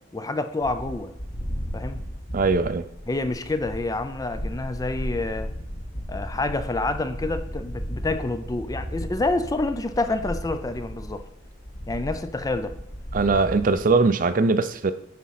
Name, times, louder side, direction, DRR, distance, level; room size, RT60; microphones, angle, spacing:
voice 1, 0.1-1.1 1.7-2.0 3.1-5.5 6.1-11.3 11.9-12.7, left 2 dB, 20° left, 9 dB, 0.5 m, -28 dB
sound 1, 0.6-13.9, equal, 40° left, 1.4 m, -35 dB
voice 2, 2.3-2.9 13.1-14.9, right 3 dB, 45° right, 12 dB, 0.5 m, -21 dB
9.3 x 3.7 x 5.8 m, 0.77 s
head